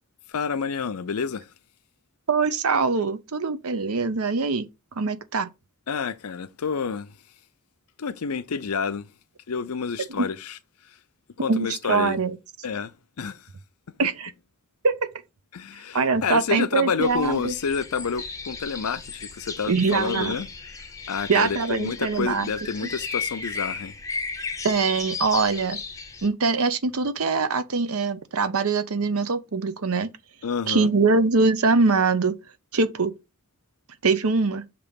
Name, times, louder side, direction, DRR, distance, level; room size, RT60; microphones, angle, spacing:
voice 1, 0.3-1.5 5.9-7.1 8.0-9.1 9.5-10.6 11.4-12.2 12.6-12.9 13.2-13.5 15.5-20.5 20.7-23.9 30.4-30.9, left 5 dB, 90° left, 0.6 m, -29 dB
voice 2, 2.3-4.7 5.0-5.5 10.2-10.3 11.5-12.4 14.0-14.3 14.8-15.1 15.9-17.5 19.7-20.4 21.3-22.5 24.6-25.8 26.2-30.1 30.7-32.4 32.7-33.1 34.0-34.6, right 4 dB, 85° right, 0.8 m, -23 dB
sound 1, 17.0-26.3, left 4 dB, 15° left, 0.6 m, -35 dB
6.8 x 3.0 x 5.2 m
head